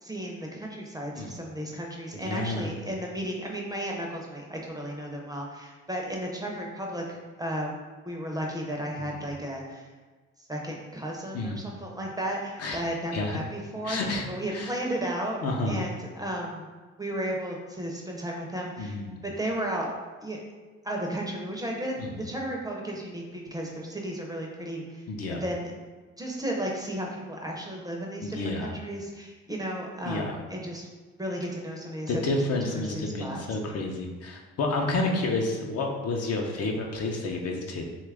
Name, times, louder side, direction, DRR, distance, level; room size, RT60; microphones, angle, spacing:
voice 1, 0.0-7.7 8.0-9.9 10.5-14.0 14.3-16.7 17.0-19.9 20.2-20.4 20.8-25.0 25.4-25.7 26.2-30.9 31.2-32.4 32.7-33.4, right 1 dB, 15° right, -1 dB, 0.5 m, -34 dB
voice 2, 2.1-2.8 9.0-9.2 11.3-11.7 12.6-12.8 13.1-13.4 13.8-14.7 15.4-15.8 18.8-19.2 22.0-22.2 25.1-25.4 28.2-28.7 30.0-30.4 32.1-37.8, left 2 dB, 55° left, 1 dB, 0.6 m, -30 dB
2.9 x 2.3 x 3.4 m, 1.3 s
cardioid pair, 90°, 30 cm